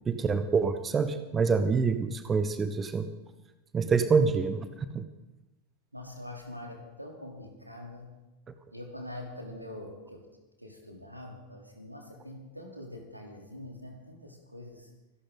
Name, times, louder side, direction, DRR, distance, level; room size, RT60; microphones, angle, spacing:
voice 1, 0.1-3.1 3.7-5.1, right 5 dB, 20° right, 11 dB, 0.9 m, -26 dB
voice 2, 5.9-8.2 8.7-10.3 10.6-14.9, left 1 dB, 90° right, 1 dB, 2.8 m, -44 dB
26.0 x 11.5 x 3.8 m, 1.1 s
figure-of-eight pair, 90°, 0 cm